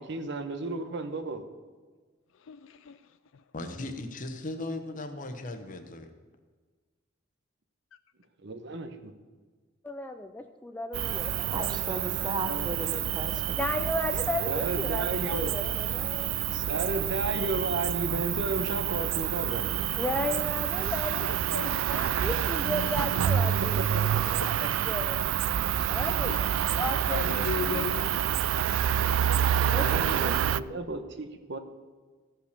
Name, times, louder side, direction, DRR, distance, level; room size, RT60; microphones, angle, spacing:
voice 1, 0.0-1.4 8.4-9.1 12.4-12.7 14.5-15.5 16.5-19.7 23.8-24.4 29.7-31.6, right 2 dB, 60° right, 1.0 m, -33 dB
voice 2, 2.4-3.4 20.3-20.4 21.2-21.7 22.0-22.4 26.3-26.4 27.1-28.2, left 6 dB, 75° left, 0.4 m, -36 dB
voice 3, 3.5-6.1, left 2 dB, 40° left, 1.1 m, -37 dB
voice 4, 9.8-11.9 13.6-17.1 20.0-21.4 21.9-25.2 25.9-26.5 26.8-27.9 29.7-30.3, left 1 dB, 10° left, 0.4 m, -35 dB
Cricket, 10.9-30.6, right 10 dB, 85° right, 0.3 m, -28 dB
voice 5, 11.5-14.0, right 2 dB, 20° right, 1.0 m, -36 dB
14.5 x 5.7 x 6.7 m
head